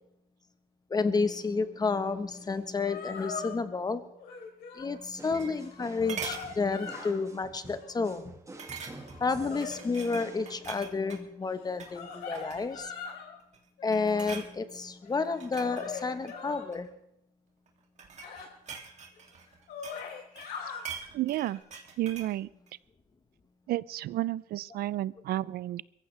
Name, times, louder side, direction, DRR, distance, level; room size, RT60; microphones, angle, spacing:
voice 1, 0.9-4.0 4.7-8.3 9.2-12.9 13.8-16.9, left 4 dB, 25° left, 10 dB, 1.2 m, -30 dB
sound 1, 2.5-2.6 2.8-3.5 4.2-4.9 5.5-7.2 7.6-8.1 8.8-10.2 11.6-13.3 13.8-14.3 15.0-16.7 18.2-18.5 19.1-19.2 19.5-20.8 21.4-21.6, left 6 dB, 70° left, 4.2 m, -42 dB
sound 2, 4.9-5.8 6.1-6.5 7.0-7.2 7.6-7.7 8.6-9.2 9.6-11.2 11.7-12.0 12.3-12.9 13.4-13.7 13.9-14.5 15.2-16.9 17.7-20.1 20.4-22.4 22.7-22.8, right 6 dB, 45° right, 2.6 m, -43 dB
sound 3, 5.2-10.6, right 2 dB, 20° right, 1.8 m, -49 dB
voice 2, 21.1-21.6 22.0-22.5 23.7-25.8, right 14 dB, 65° right, 20 dB, 0.5 m, -31 dB
23.0 x 15.0 x 3.4 m, 0.83 s
cardioid pair, 110°, 17 cm